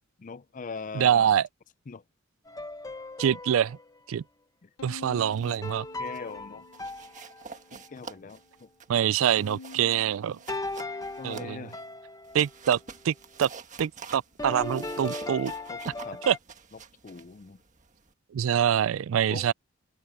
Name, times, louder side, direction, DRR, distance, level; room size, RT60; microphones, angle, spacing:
voice 1, 0.2-1.3 1.9-2.0 4.6-4.7 5.5-5.6 6.0-6.7 7.7-8.7 11.2-11.8 15.7-16.2 17.0-17.6 19.3-19.5, left 4 dB, 40° left, 0.4 m, -41 dB
voice 2, 0.9-1.5 3.2-3.8 4.1-4.2 4.8-5.8 8.9-10.4 11.2-11.7 12.3-12.8 13.0-13.5 13.8-15.5 16.3-16.4 18.3-19.5, right 9 dB, 75° right, 0.3 m, -25 dB
sound 1, 2.5-4.0 5.6-7.8 10.5-12.5 14.4-16.4, left 2 dB, 15° left, 0.9 m, -38 dB
Bowed string instrument, 4.8-7.2 7.6-8.4 9.4-11.9, left 3 dB, 80° left, 0.7 m, -49 dB
sound 2, 5.1-5.7 6.0-6.3 6.7-11.8 12.2-18.1, right 5 dB, 35° right, 1.6 m, -47 dB
head